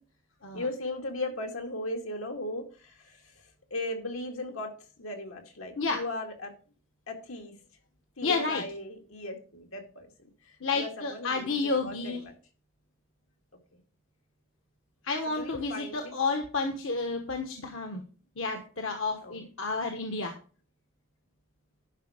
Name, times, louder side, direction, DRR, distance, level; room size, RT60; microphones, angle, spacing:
voice 1, 0.5-3.3 3.7-4.7 5.0-6.5 7.1-7.5 8.2-10.1 10.5-12.3 13.7-13.8 15.3-16.1 19.2-19.4, left 2 dB, 90° left, 3 dB, 2.2 m, -37 dB
voice 2, 8.2-8.6 10.6-12.2 15.0-18.0 18.4-20.3, left 3 dB, 75° left, 4 dB, 1.2 m, -31 dB
11.5 x 5.4 x 5.0 m, 0.37 s
head